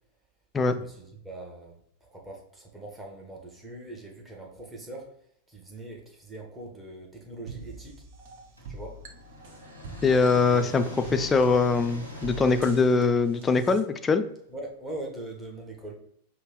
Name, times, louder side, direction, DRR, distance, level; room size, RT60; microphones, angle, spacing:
voice 1, 0.6-5.1 5.5-8.0 8.7-9.0 10.5-10.9 14.5-15.9, right 2 dB, 10° right, -1 dB, 1.2 m, -42 dB
sound 1, 7.5-13.8, right 2 dB, 50° right, 0.7 m, -44 dB
sound 2, 8.6-14.5, left 1 dB, 90° right, 1.1 m, -45 dB
voice 2, 10.0-14.2, left 4 dB, 20° left, 9 dB, 0.4 m, -22 dB
5.4 x 2.2 x 3.8 m, 0.71 s
figure-of-eight pair, 90°, 0 cm